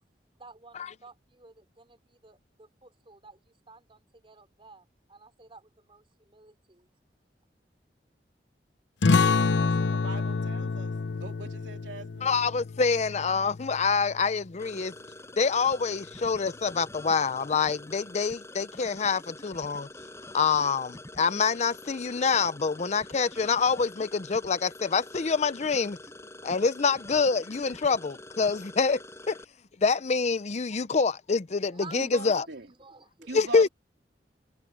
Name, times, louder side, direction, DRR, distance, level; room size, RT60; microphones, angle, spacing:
voice 1, 0.4-6.9 31.7-32.2 32.6-33.3 33.6-33.7, right 3 dB, 30° right, 4.1 m, -52 dB
sound 1, 9.0-14.2, left 4 dB, 80° left, 0.7 m, -27 dB
voice 2, 9.6-12.3 32.0-32.7 33.2-33.7, right 2 dB, 90° right, 3.3 m, -41 dB
voice 3, 12.2-14.9 15.4-19.9 20.3-26.0 26.4-29.0 29.3-29.4 29.8-32.4 33.3-33.7, left 5 dB, 40° left, 0.6 m, -26 dB
sound 2, 14.6-29.4, left 1 dB, 15° left, 7.5 m, -46 dB
head